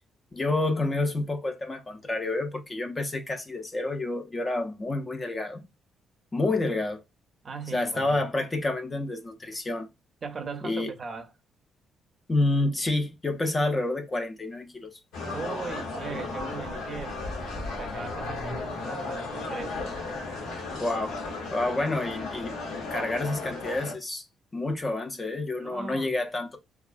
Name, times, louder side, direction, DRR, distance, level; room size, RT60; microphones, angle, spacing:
voice 1, 0.3-5.6 6.3-7.0 7.7-9.9 10.6-10.9 12.3-14.9 20.7-21.2 21.5-22.5 22.9-24.2 24.5-26.6, left 2 dB, 25° left, 0.5 m, -29 dB
voice 2, 7.4-8.3 10.2-11.3 15.3-17.2 17.8-19.8 25.6-26.1, right 5 dB, 40° right, 0.5 m, -38 dB
sound 1, 15.1-23.9, left 3 dB, 90° left, 0.8 m, -35 dB
2.3 x 2.2 x 2.4 m
cardioid pair, 90°, 0 cm